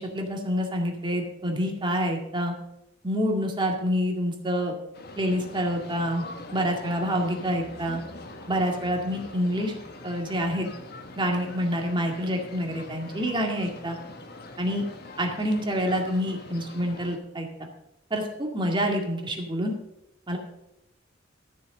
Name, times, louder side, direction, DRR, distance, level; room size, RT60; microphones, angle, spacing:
voice 1, 0.0-2.5 3.0-4.8 5.2-6.2 6.5-8.0 8.5-9.7 10.0-10.7 11.2-14.0 14.6-14.8 15.2-17.7 18.1-19.7 20.3-20.4, equal, 25° right, 1 dB, 2.1 m, -27 dB
sound 1, 4.9-17.2, left 2 dB, 55° left, 1.3 m, -43 dB
13.0 x 6.8 x 6.6 m, 0.83 s
head